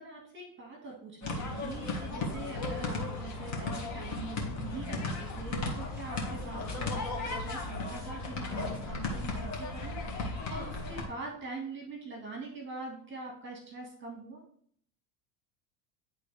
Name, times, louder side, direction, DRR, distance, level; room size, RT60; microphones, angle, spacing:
voice 1, 0.0-14.4, right 3 dB, 25° right, -1 dB, 1.9 m, -43 dB
sound 1, 1.2-11.1, left 3 dB, 40° left, 2.0 m, -35 dB
11.0 x 3.8 x 3.4 m, 0.62 s
supercardioid pair, 105°, 42 cm